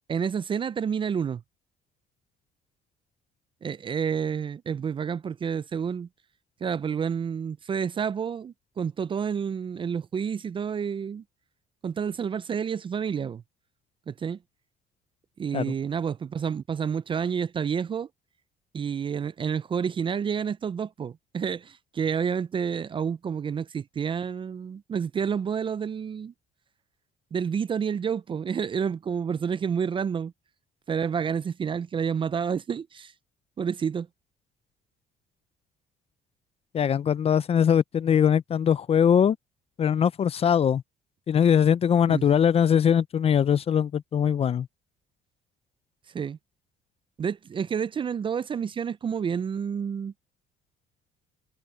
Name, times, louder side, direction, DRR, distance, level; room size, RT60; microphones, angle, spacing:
voice 1, 0.1-1.4 3.6-6.1 6.6-11.2 11.8-13.4 14.1-14.4 15.4-18.1 18.7-26.3 27.3-30.3 30.9-33.1 33.6-34.1 42.1-42.3 46.1-46.4 47.2-50.1, right 7 dB, 30° right, 0.4 m, -29 dB
voice 2, 36.7-39.4 39.8-40.8 41.3-44.7, left 8 dB, 35° left, 0.5 m, -21 dB
cardioid pair, 110°, 17 cm